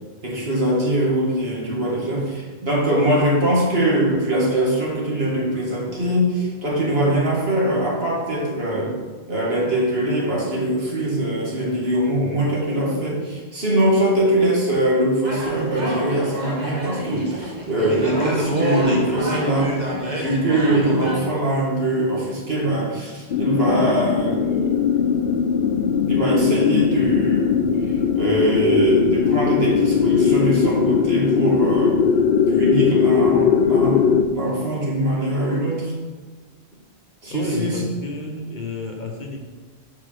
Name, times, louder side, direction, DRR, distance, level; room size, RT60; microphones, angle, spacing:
voice 1, 0.2-8.9 9.3-19.8 20.1-25.1 26.1-32.1 32.5-35.9 37.2-37.8, right 1 dB, 65° right, -4 dB, 2.2 m, -22 dB
sound 1, 15.2-21.3, right 1 dB, 40° right, 1.4 m, -28 dB
sound 2, 23.3-34.2, left 7 dB, 65° left, 0.7 m, -19 dB
voice 2, 37.3-39.4, left 2 dB, 45° left, 1 dB, 1.0 m, -30 dB
6.6 x 4.8 x 6.4 m, 1.4 s
omnidirectional pair, 1.1 m